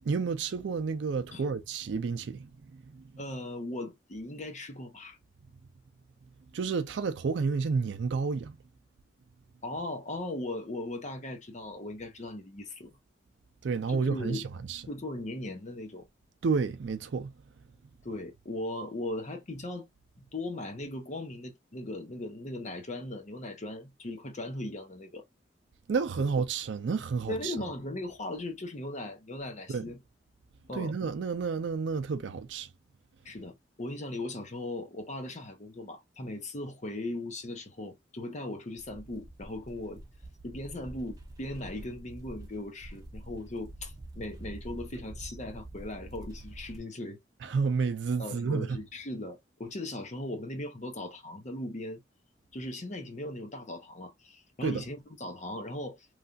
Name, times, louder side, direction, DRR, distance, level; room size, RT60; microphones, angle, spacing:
voice 1, 0.0-3.1 6.5-8.6 13.6-14.8 16.4-17.3 25.9-27.7 29.7-29.8 30.7-32.7 47.4-48.8 54.6-54.8, right 5 dB, 70° right, 0.4 m, -30 dB
voice 2, 3.2-5.2 9.6-12.9 13.9-14.4 14.9-16.1 18.0-19.9 20.2-25.2 27.3-30.0 30.7-30.9 33.2-40.0 40.4-47.2 48.2-52.0 52.5-56.1, left 1 dB, 40° left, 0.8 m, -38 dB
sound 1, 38.8-46.8, right 1 dB, 20° right, 0.8 m, -46 dB
3.2 x 2.3 x 2.4 m
head